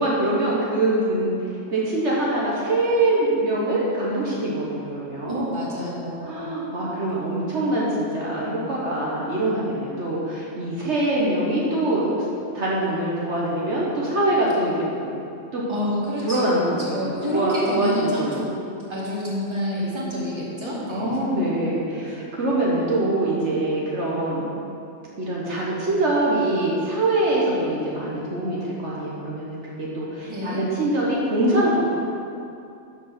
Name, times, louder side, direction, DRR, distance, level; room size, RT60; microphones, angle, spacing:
voice 1, 0.0-1.4 1.7-5.4 6.2-12.2 12.5-15.1 15.5-15.6 16.2-18.5 20.9-24.5 25.2-31.9, right 1 dB, 65° right, -5 dB, 1.6 m, -24 dB
voice 2, 5.3-6.5 15.7-18.5 18.9-21.2 30.2-30.6, equal, 20° right, -7 dB, 2.1 m, -28 dB
7.4 x 6.7 x 5.9 m, 2.6 s
omnidirectional pair, 1.3 m